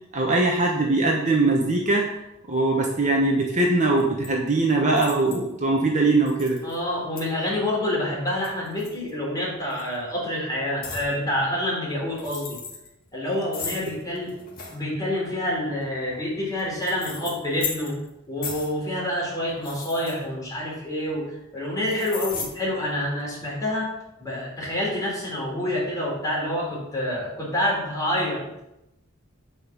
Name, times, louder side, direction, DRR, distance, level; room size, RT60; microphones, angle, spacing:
voice 1, 0.1-2.1 2.5-6.6, right 2 dB, 35° right, -1 dB, 1.2 m, -21 dB
sound 1, 4.0-4.3 5.0-5.5 6.3-6.8 7.2-7.3 8.3-9.3 9.7-10.0 10.8-11.1 12.1-12.9 13.5-14.8 15.8-18.1 18.4-18.8 19.5-20.8 21.9-22.5, left 5 dB, 40° left, 2.0 m, -36 dB
voice 2, 6.6-12.6 13.1-14.3 14.7-18.0 18.3-23.9 24.2-28.4, left 1 dB, 15° left, -5 dB, 3.8 m, -27 dB
9.2 x 5.4 x 6.0 m, 0.88 s
head